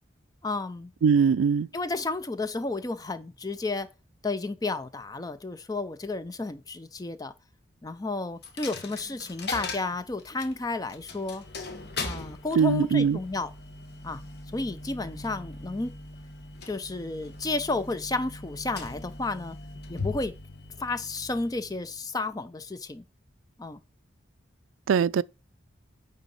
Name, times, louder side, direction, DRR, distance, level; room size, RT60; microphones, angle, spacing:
voice 1, 0.4-0.9 1.7-3.9 4.2-7.3 7.8-11.4 12.0-13.5 14.0-14.2 14.5-15.9 16.7-19.6 19.9-20.3 20.8-23.0 23.6-23.8, left 2 dB, 20° left, 0.4 m, -32 dB
voice 2, 1.0-1.7 12.5-13.2 24.9-25.2, right 6 dB, 90° right, 0.3 m, -21 dB
Coin (dropping), 8.4-22.2, left 3 dB, 55° left, 1.4 m, -40 dB
9.2 x 3.9 x 5.3 m
head